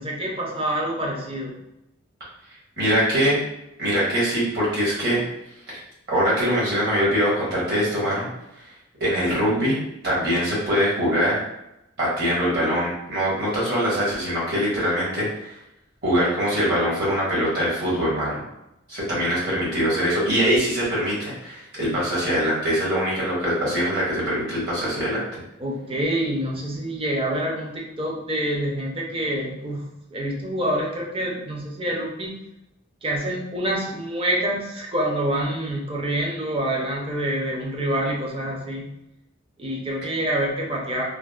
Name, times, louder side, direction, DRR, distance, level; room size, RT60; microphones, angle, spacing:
voice 1, 0.0-1.6 19.1-19.2 25.6-32.3 33.0-38.9 39.6-41.0, right 1 dB, 25° right, -2 dB, 0.5 m, -27 dB
voice 2, 2.8-3.4 3.8-5.2 6.1-8.3 8.6-8.7 9.0-11.4 12.0-15.6 16.0-18.4 18.9-25.4, equal, 55° right, -7 dB, 1.4 m, -23 dB
3.3 x 2.1 x 2.3 m, 0.88 s
head